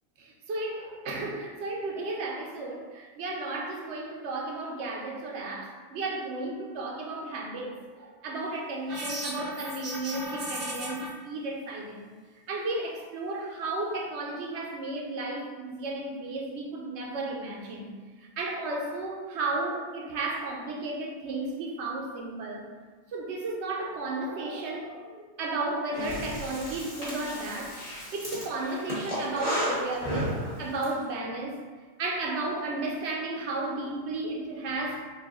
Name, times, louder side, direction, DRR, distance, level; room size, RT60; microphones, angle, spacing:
voice 1, 0.2-12.1 12.5-17.9 18.2-22.7 23.1-27.8 28.1-31.6 32.0-35.1, right 2 dB, 70° right, 0 dB, 1.0 m, -34 dB
sound 1, 8.9-11.1, right 1 dB, 40° right, 0.8 m, -35 dB
Breathing, 25.9-30.9, equal, 30° left, 1.3 m, -33 dB
4.1 x 2.5 x 3.7 m, 1.4 s
omnidirectional pair, 1.3 m